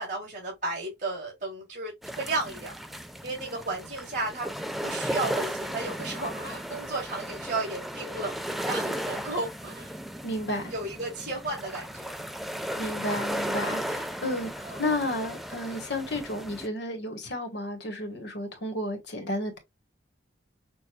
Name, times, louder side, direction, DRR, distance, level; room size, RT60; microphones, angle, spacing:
voice 1, 0.0-2.7 3.2-4.5 4.8-9.9 10.7-12.1 14.6-14.8, right 2 dB, 40° right, 2.8 m, -34 dB
sound 1, 2.0-16.7, equal, ahead, 0.3 m, -35 dB
voice 2, 10.2-10.7 12.8-19.6, left 1 dB, 60° left, 1.4 m, -32 dB
6.5 x 2.5 x 2.3 m
head